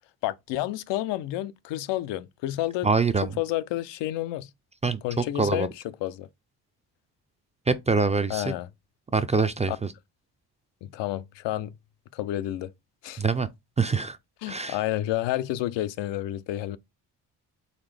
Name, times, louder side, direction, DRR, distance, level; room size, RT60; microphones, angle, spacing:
voice 1, 0.2-2.9 3.4-4.5 5.0-5.7 6.0-6.3 8.3-8.7 9.7-9.8 10.9-11.7 12.1-12.7 13.0-13.2 14.4-16.8, left 14 dB, 80° left, 0.5 m, -30 dB
voice 2, 2.8-3.4 4.8-5.7 7.7-8.5 9.1-9.9 13.2-13.5 13.8-14.2 14.5-14.8, right 4 dB, 20° right, 0.3 m, -25 dB
4.1 x 3.4 x 3.2 m
cardioid pair, 85°, 42 cm